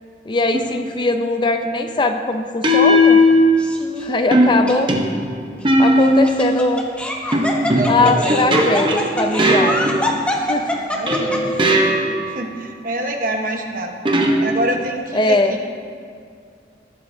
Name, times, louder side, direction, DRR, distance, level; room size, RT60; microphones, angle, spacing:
voice 1, 0.3-3.2 4.0-4.9 5.8-6.8 7.9-10.1 10.4-10.7 11.4-11.5 15.1-15.6, left 2 dB, 25° left, 6 dB, 0.5 m, -20 dB
sound 1, 0.5-0.9 2.6-3.9 4.3-6.5 7.3-10.3 11.1-12.3 14.1-14.9, equal, 25° right, 0.8 m, -17 dB
Laughter, 3.6-4.1 4.7-4.8 6.0-11.6, left 1 dB, 5° left, 0.9 m, -24 dB
voice 2, 7.7-8.4 10.7-11.5 12.3-13.9 14.4-15.4, right 1 dB, 50° right, 3 dB, 1.1 m, -25 dB
19.0 x 8.5 x 2.7 m, 2.3 s
head